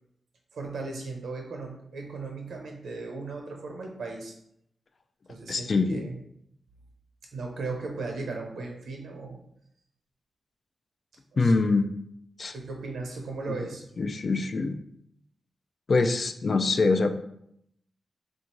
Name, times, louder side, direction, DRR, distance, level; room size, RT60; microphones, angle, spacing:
voice 1, 0.5-4.3 5.3-6.1 7.3-9.4 11.3-11.7 12.5-13.8, right 3 dB, 85° right, 1 dB, 0.9 m, -37 dB
voice 2, 5.5-6.0 11.4-11.9 12.4-12.5 13.5-13.6 14.0-14.8 15.9-17.1, left 3 dB, 50° left, 8 dB, 0.4 m, -24 dB
3.5 x 2.6 x 4.4 m, 0.74 s
wide cardioid pair, 100°, 0 cm